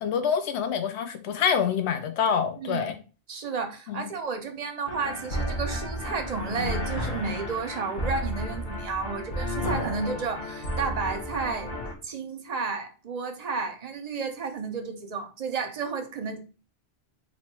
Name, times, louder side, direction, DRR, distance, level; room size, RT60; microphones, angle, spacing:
voice 1, 0.0-3.0 3.9-4.1, left 7 dB, 75° left, 8 dB, 0.9 m, -26 dB
voice 2, 3.3-11.7 12.0-16.4, right 4 dB, 45° right, 6 dB, 0.6 m, -32 dB
sound 1, 4.9-11.9, equal, 50° left, 1.0 m, -32 dB
3.0 x 2.7 x 4.4 m, 0.35 s
omnidirectional pair, 1.1 m